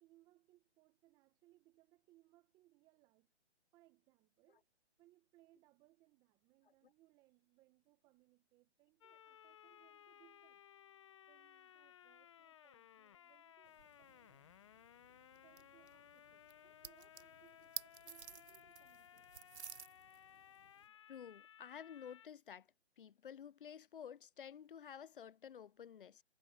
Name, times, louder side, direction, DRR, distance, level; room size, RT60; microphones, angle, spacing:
voice 1, 0.0-3.3 3.7-4.7 5.0-10.6 11.3-14.6 15.4-19.5, right 18 dB, 10° right, 1.2 m, -71 dB
sound 1, 9.0-22.3, left 10 dB, 25° left, 0.9 m, -61 dB
sound 2, 13.6-20.9, right 7 dB, 70° right, 1.2 m, -54 dB
voice 2, 21.1-22.7 23.0-26.2, left 8 dB, 50° left, 0.6 m, -52 dB
hypercardioid pair, 155°, 34 cm